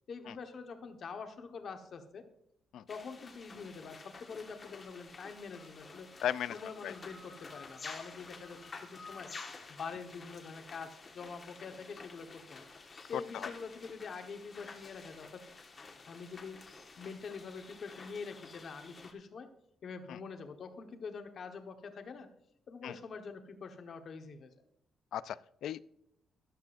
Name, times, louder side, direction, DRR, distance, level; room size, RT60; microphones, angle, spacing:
voice 1, 0.1-2.2 2.9-6.1 6.5-9.3 9.7-12.6 13.1-15.4 16.1-16.6 17.0-19.5 19.8-22.3 22.7-24.5, left 5 dB, 50° left, 6 dB, 1.3 m, -45 dB
sound 1, 2.9-19.1, left 4 dB, 30° left, 1.5 m, -51 dB
voice 2, 6.2-6.6 6.8-6.9 13.3-13.5 20.1-20.2 22.8-23.0 25.1-25.8, left 10 dB, 80° left, 16 dB, 0.4 m, -36 dB
14.0 x 11.5 x 2.6 m, 0.75 s
cardioid pair, 155°, 0 cm